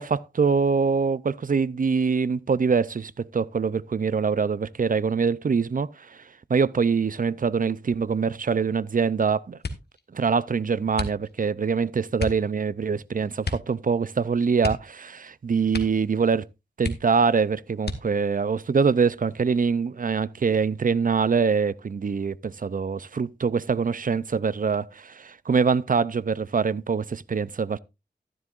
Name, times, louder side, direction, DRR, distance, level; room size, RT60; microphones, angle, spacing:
voice 1, 0.0-6.2 6.5-9.6 10.1-16.4 16.8-27.8, right 5 dB, 50° right, 0.5 m, -24 dB
sound 1, 9.6-10.0 10.9-11.6 12.2-12.5 13.4-13.8 14.0-14.1 14.6-15.3 15.7-16.1 16.4-16.5 16.8-17.3 17.8-18.4 19.1-19.7 20.1-20.5, left 3 dB, 70° left, 1.4 m, -33 dB
12.5 x 11.0 x 2.4 m
wide cardioid pair, 65°, 18 cm